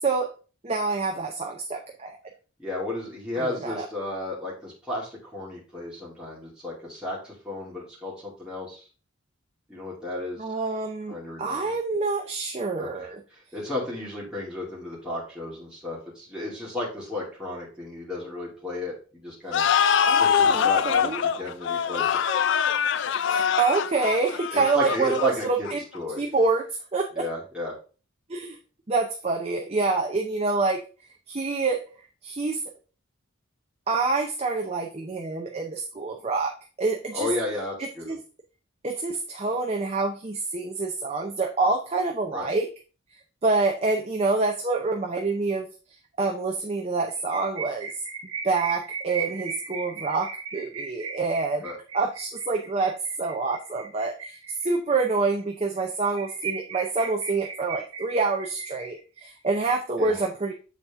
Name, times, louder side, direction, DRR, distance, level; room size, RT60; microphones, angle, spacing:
voice 1, 0.0-0.3 0.6-2.2 3.4-3.9 10.4-13.2 20.1-21.2 23.2-25.8 26.2-27.3 28.3-28.6 28.9-30.8 31.3-31.8 32.2-32.6 33.9-37.3 37.8-38.2 38.8-42.7 43.4-45.7 46.2-47.9 48.4-51.7 51.9-60.5, right 3 dB, 30° right, 1 dB, 0.6 m, -27 dB
voice 2, 2.6-8.9 9.7-10.4 11.1-11.7 12.8-19.7 20.2-22.2 24.5-26.2 27.1-27.7 37.1-38.2 42.3-42.5 51.6-51.8 60.0-60.2, left 1 dB, 5° right, -7 dB, 2.2 m, -33 dB
sound 1, 19.5-26.0, left 7 dB, 55° left, 0.3 m, -23 dB
sound 2, 47.1-55.0 55.4-55.5 55.8-55.9 56.1-59.2, right 6 dB, 80° right, 1.0 m, -37 dB
7.1 x 4.1 x 3.5 m, 0.36 s
head